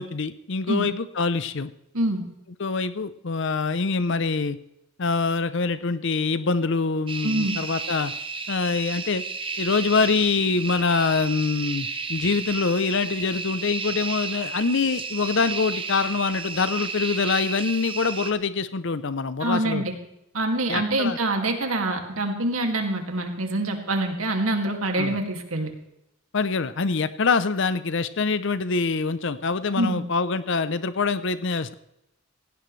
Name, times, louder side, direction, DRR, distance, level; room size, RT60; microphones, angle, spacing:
voice 1, 0.0-1.7 2.6-4.6 5.0-8.1 8.5-9.2 9.6-19.8 20.7-21.2 25.0-25.2 26.3-31.7, left 4 dB, 60° left, 13 dB, 0.7 m, -25 dB
sound 1, 7.1-18.3, right 4 dB, 25° right, 1.1 m, -32 dB
voice 2, 7.2-7.5 19.4-19.9 20.3-25.7 29.8-30.0, right 1 dB, 85° right, 3 dB, 2.4 m, -25 dB
17.0 x 17.0 x 3.3 m, 0.84 s
head